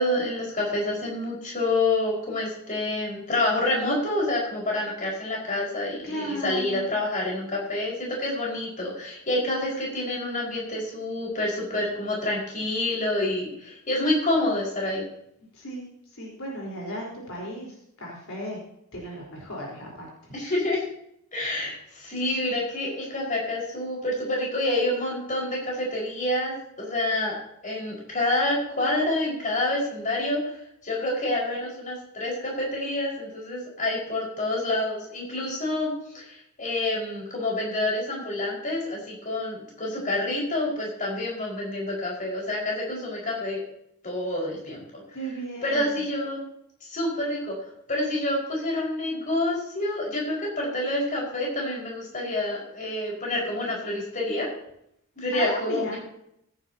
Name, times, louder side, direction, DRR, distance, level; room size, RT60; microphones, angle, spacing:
voice 1, 0.0-15.0 20.3-20.8 21.3-27.4 27.6-43.6 44.0-45.0 45.6-46.4 46.8-47.6 47.9-54.5 55.2-56.0, left 1 dB, 40° left, -3 dB, 5.2 m, -28 dB
voice 2, 6.0-6.8 15.5-18.6 18.9-20.1 45.1-46.0 55.3-56.0, equal, 65° left, -2 dB, 4.3 m, -35 dB
16.5 x 10.5 x 2.9 m, 0.74 s
head